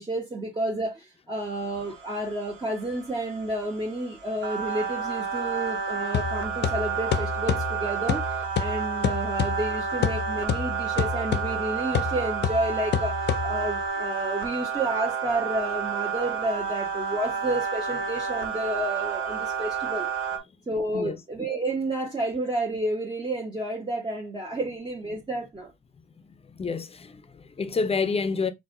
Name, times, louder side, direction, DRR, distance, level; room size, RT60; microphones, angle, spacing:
voice 1, 0.0-20.1 20.7-25.7, right 1 dB, 20° right, 1.4 m, -31 dB
sound 1, 1.5-20.4, right 6 dB, 75° right, 1.4 m, -31 dB
sound 2, 6.1-13.9, left 7 dB, 60° left, 0.6 m, -29 dB
voice 2, 26.4-28.5, left 4 dB, 30° left, 0.9 m, -28 dB
4.7 x 2.5 x 3.8 m
cardioid pair, 90°, 20 cm